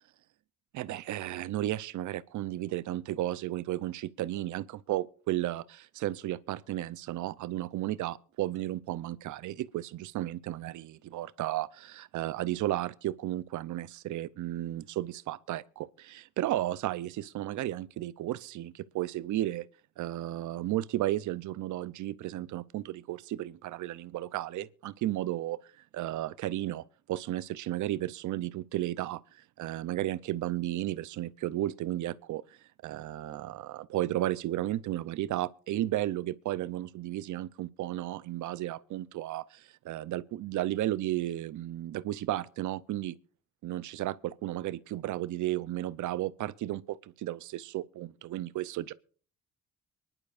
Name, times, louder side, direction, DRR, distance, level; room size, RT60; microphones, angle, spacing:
voice 1, 0.7-19.6 20.0-25.6 25.9-32.4 32.8-43.1 43.6-48.9, right 14 dB, 75° right, 0.7 m, -34 dB
24.0 x 11.0 x 2.5 m
cardioid pair, 90°, 30 cm